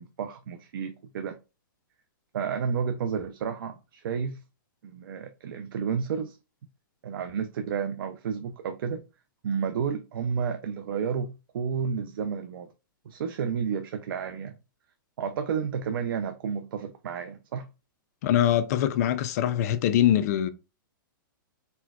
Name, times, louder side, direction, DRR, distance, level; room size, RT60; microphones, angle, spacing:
voice 1, 0.0-1.4 2.3-4.4 4.8-6.4 7.0-9.0 9.4-12.7 13.1-14.5 15.2-17.7, right 6 dB, 75° right, 0.4 m, -31 dB
voice 2, 18.2-20.5, left 11 dB, 45° left, 0.4 m, -23 dB
4.2 x 2.2 x 2.3 m
hypercardioid pair, 150°, 12 cm